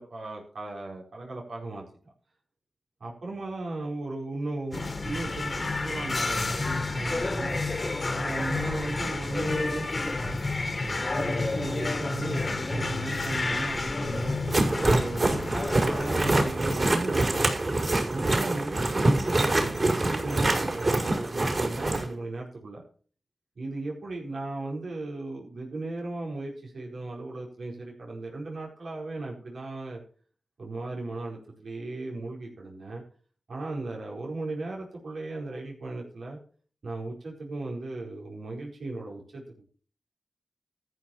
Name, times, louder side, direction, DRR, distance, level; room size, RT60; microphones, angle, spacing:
voice 1, 0.0-2.1 3.0-7.6 8.1-10.4 10.8-14.4 14.8-17.5 18.1-22.8 23.6-30.0 30.6-33.0 33.5-36.4 36.8-39.4, right 2 dB, 80° right, -3 dB, 4.6 m, -36 dB
sound 1, 4.7-16.5, left 3 dB, 50° left, 2.2 m, -30 dB
sound 2, 14.5-22.0, right 2 dB, 50° right, 5.6 m, -25 dB
14.0 x 6.3 x 7.0 m, 0.43 s
cardioid pair, 40°, 0 cm